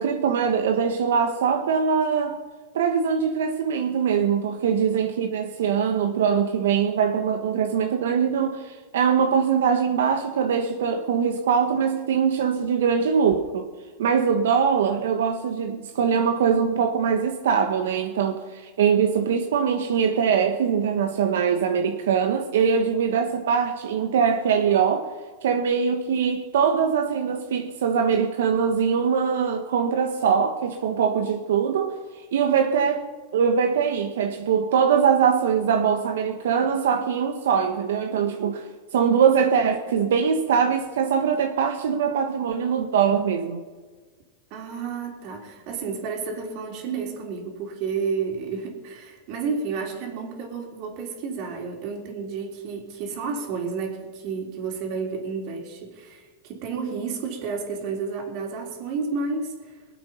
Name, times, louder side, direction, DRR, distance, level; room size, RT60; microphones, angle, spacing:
voice 1, 0.0-2.4 2.7-13.7 14.0-25.1 25.4-33.1 33.3-43.6, right 7 dB, 85° right, 1.1 m, -22 dB
voice 2, 44.5-59.5, right 5 dB, 50° right, 3.6 m, -31 dB
22.5 x 7.8 x 5.6 m
supercardioid pair, 140°, 0 cm